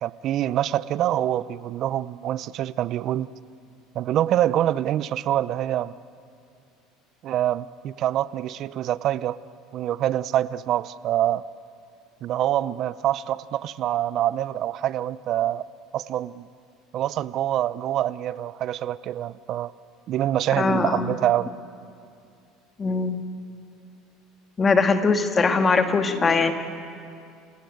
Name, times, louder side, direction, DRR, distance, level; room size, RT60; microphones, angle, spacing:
voice 1, 0.0-3.3 3.9-5.9 7.2-9.4 9.7-11.4 12.2-15.7 15.9-16.5 16.9-19.7 20.1-21.5, right 12 dB, 55° right, 17 dB, 0.7 m, -25 dB
voice 2, 20.6-21.1 22.8-23.2 24.6-26.5, left 4 dB, 25° left, 7 dB, 1.8 m, -21 dB
29.0 x 17.5 x 9.5 m, 2.5 s
supercardioid pair, 100°, 0 cm